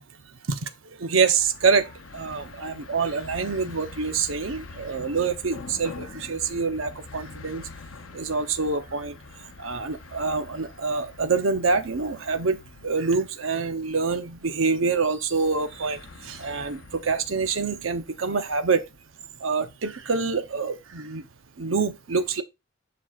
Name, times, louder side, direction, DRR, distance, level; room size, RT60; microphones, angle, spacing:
voice 1, 0.5-7.7 8.1-9.2 9.6-18.9 19.4-21.3 21.6-22.4, right 4 dB, 90° right, 0.8 m, -26 dB
sound 1, 1.4-18.6, left 3 dB, 90° left, 0.7 m, -45 dB
7.5 x 6.0 x 2.4 m
head